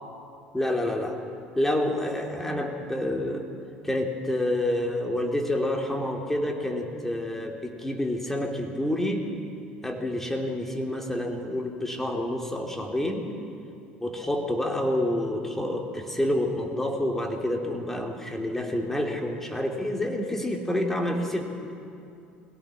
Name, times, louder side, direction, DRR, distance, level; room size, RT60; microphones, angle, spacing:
voice 1, 0.5-1.2 1.6-3.5 3.8-9.3 9.8-13.3 14.0-21.5, left 1 dB, 5° left, 1 dB, 3.1 m, -28 dB
22.0 x 16.5 x 7.2 m, 2.5 s
figure-of-eight pair, 65°, 5 cm